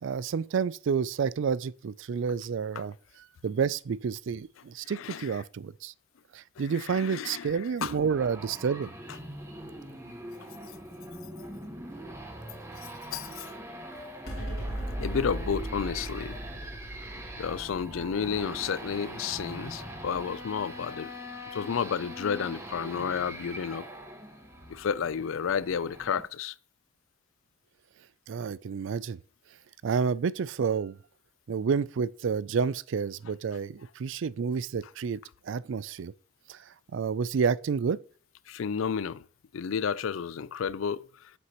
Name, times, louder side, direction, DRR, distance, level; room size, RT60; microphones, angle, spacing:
voice 1, 0.0-2.9 3.4-5.9 6.3-8.9 28.3-29.2 29.8-31.0 31.5-35.2 35.5-36.1 36.5-36.6 36.9-38.0, right 6 dB, 65° right, 0.4 m, -29 dB
voice 2, 4.9-5.3 6.6-7.5 7.8-7.9 13.1-13.5 15.0-16.4 17.4-21.1 21.5-23.8 24.7-26.5 38.5-39.2 39.5-41.0, left 7 dB, 75° left, 0.4 m, -31 dB
sound 1, 7.8-26.2, right 1 dB, 15° right, 1.3 m, -43 dB
sound 2, 14.3-20.9, equal, 50° left, 2.6 m, -38 dB
8.5 x 7.9 x 3.0 m
head